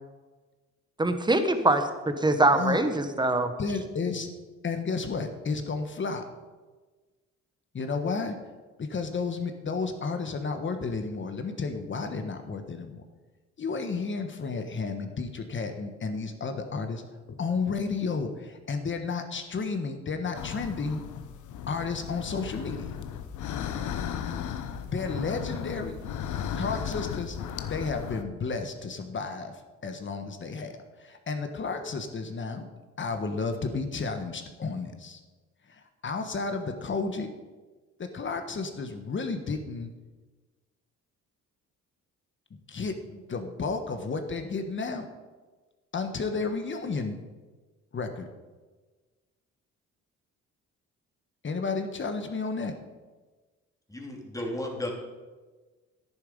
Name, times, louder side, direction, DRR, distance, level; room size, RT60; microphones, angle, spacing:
voice 1, 1.0-3.5, right 2 dB, 15° right, 8 dB, 1.3 m, -23 dB
voice 2, 3.6-4.3 4.6-6.3 7.7-8.4 8.8-13.0 13.6-17.0 17.3-21.0 21.7-22.9 24.8-26.0 26.6-27.4 27.7-32.7 33.0-35.2 35.7-37.3 38.0-39.9 42.5-45.1 45.9-47.2 47.9-48.2 51.4-52.7, left 4 dB, 40° left, 7 dB, 1.3 m, -32 dB
sound 1, 20.3-28.2, left 8 dB, 80° left, 0.9 m, -35 dB
voice 3, 53.9-54.9, left 1 dB, 10° left, 0 dB, 2.8 m, -34 dB
10.5 x 9.9 x 5.3 m, 1.3 s
cardioid pair, 90°, 30 cm